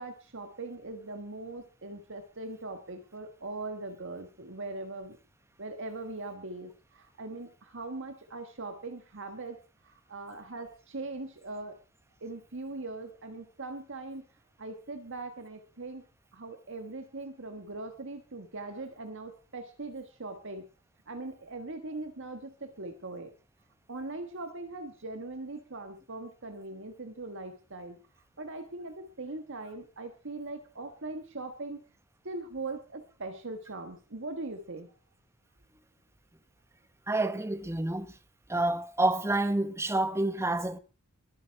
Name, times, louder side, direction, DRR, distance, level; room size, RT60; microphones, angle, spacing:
voice 1, 0.0-5.2 5.6-9.6 9.8-11.8 12.2-14.2 14.6-16.0 16.3-20.6 21.1-23.3 23.9-28.0 28.4-31.8 32.2-34.9, right 2 dB, 60° right, 1.6 m, -40 dB
voice 2, 37.1-38.1 38.5-40.8, right 2 dB, 10° right, 0.9 m, -28 dB
22.0 x 9.5 x 4.6 m
head